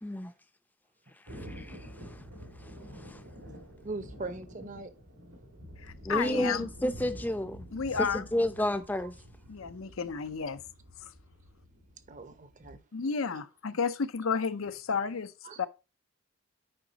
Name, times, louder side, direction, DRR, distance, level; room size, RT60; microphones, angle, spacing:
voice 1, 0.0-0.3 1.3-2.2 2.6-3.2 6.0-7.6 8.1-9.1, left 1 dB, 10° left, 0.5 m, -32 dB
Thunder, 1.3-12.8, equal, 85° right, 2.3 m, -48 dB
voice 2, 3.8-4.9 6.1-6.5 12.1-12.8 13.3-13.4 15.4-15.7, right 3 dB, 35° right, 0.8 m, -41 dB
voice 3, 5.8-6.7 7.7-8.2 9.5-10.6 12.9-15.3 15.6-15.7, left 5 dB, 75° left, 0.6 m, -32 dB
8.9 x 5.0 x 4.0 m
head